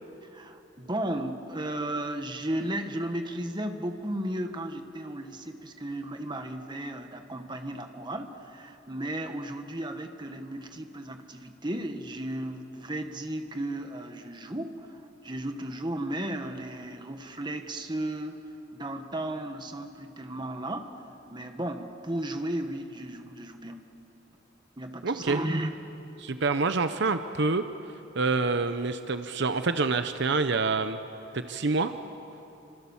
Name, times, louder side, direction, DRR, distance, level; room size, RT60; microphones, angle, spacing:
voice 1, 0.3-18.4 18.7-20.9 21.3-23.8 24.8-25.8, right 1 dB, 25° right, 6 dB, 1.6 m, -34 dB
voice 2, 25.0-25.4 26.2-27.6 28.1-31.0 31.3-31.9, right 3 dB, 65° right, 9 dB, 0.8 m, -27 dB
29.5 x 25.5 x 7.2 m, 2.9 s
head